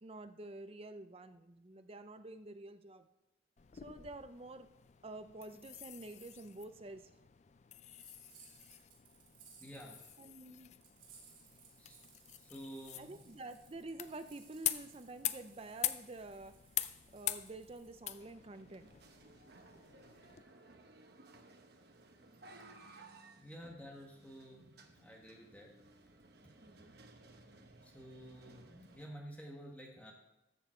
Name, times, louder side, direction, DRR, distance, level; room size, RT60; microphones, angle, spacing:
voice 1, 0.0-3.1 3.7-4.7 5.0-7.1 10.2-10.7 12.9-16.6 17.1-18.9 26.6-27.0, right 2 dB, 30° right, 10 dB, 0.6 m, -49 dB
sound 1, 3.6-20.4, left 12 dB, 35° left, 0.4 m, -45 dB
sound 2, 8.0-10.2 10.8-18.3, right 6 dB, 85° right, 3.4 m, -63 dB
voice 2, 9.6-10.0 11.8-12.0 12.4-13.1 23.4-25.7 27.8-30.1, equal, 5° left, 0 dB, 1.5 m, -51 dB
sound 3, 18.1-29.1, right 2 dB, 55° right, 1.0 m, -59 dB
13.5 x 7.3 x 4.4 m, 0.91 s
head